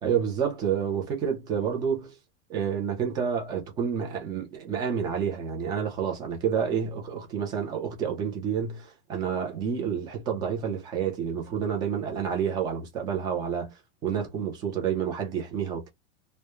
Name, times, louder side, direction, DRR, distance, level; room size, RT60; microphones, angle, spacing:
voice 1, 0.0-2.1 2.5-13.7 14.0-15.9, right 7 dB, 10° right, 0.3 m, -29 dB
2.2 x 2.1 x 2.9 m
supercardioid pair, 140°, 39 cm